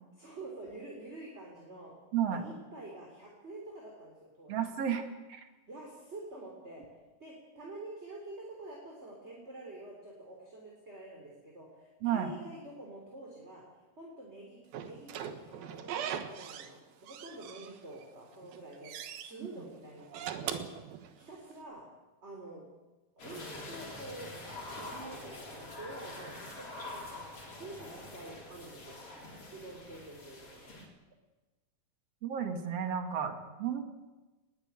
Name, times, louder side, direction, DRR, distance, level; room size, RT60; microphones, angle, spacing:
voice 1, 0.2-1.9 2.3-4.6 5.7-6.8 7.2-13.6 13.9-20.7 21.1-21.8 22.2-22.6 23.2-29.0 29.5-30.7, right 2 dB, 20° right, -1 dB, 3.5 m, -48 dB
voice 2, 2.1-2.4 4.5-5.5 12.0-12.3 32.2-33.8, right 8 dB, 50° right, 6 dB, 2.7 m, -32 dB
Slam / Squeak, 14.7-16.8 17.1-18.0 18.4-19.3 20.0-21.5, right 9 dB, 75° right, 3.1 m, -40 dB
sound 1, 23.2-30.9, left 2 dB, 40° left, 4.7 m, -45 dB
20.5 x 18.5 x 8.9 m, 1.2 s
omnidirectional pair, 4.3 m